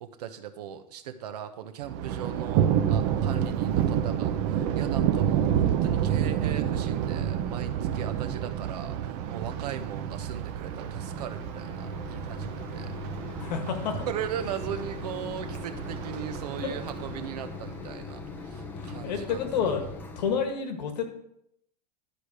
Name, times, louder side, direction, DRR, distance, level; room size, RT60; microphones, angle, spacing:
voice 1, 0.0-12.9 14.0-19.4, right 9 dB, 70° right, 8 dB, 1.1 m, -38 dB
Thunder, 1.8-17.8, right 9 dB, 35° right, 0.6 m, -29 dB
Mechanisms, 9.5-20.5, left 3 dB, 10° left, 0.6 m, -41 dB
voice 2, 13.4-13.9 16.6-16.7 18.8-19.8 20.2-21.1, left 6 dB, 80° left, 5 dB, 1.7 m, -29 dB
11.5 x 5.0 x 4.9 m, 0.76 s
supercardioid pair, 170°, 21 cm